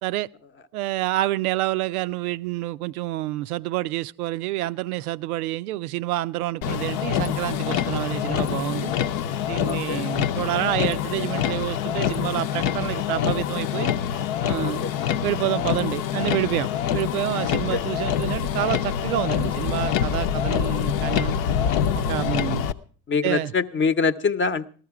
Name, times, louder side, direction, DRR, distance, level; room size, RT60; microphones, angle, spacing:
voice 1, 0.7-8.9 9.5-13.9 14.4-14.8 15.2-21.4 21.9-22.6 23.2-23.5, right 16 dB, 80° right, 0.5 m, -28 dB
Motor vehicle (road), 6.6-22.7, left 9 dB, 60° left, 0.8 m, -25 dB
voice 2, 9.6-10.1 14.6-14.9 17.5-17.8 23.1-24.7, left 5 dB, 25° left, 0.8 m, -24 dB
14.5 x 13.0 x 4.7 m
hypercardioid pair, 65°, 44 cm